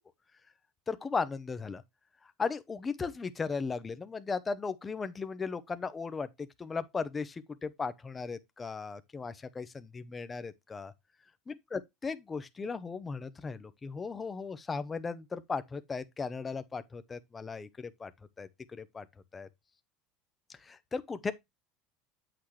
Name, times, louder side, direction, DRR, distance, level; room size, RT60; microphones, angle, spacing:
voice 1, 0.9-1.8 2.4-6.3 6.6-10.9 11.5-18.1 18.4-19.0 19.3-19.5 20.5-21.3, left 4 dB, 20° left, 0.8 m, -37 dB
8.3 x 6.0 x 3.2 m
supercardioid pair, 120°, 0 cm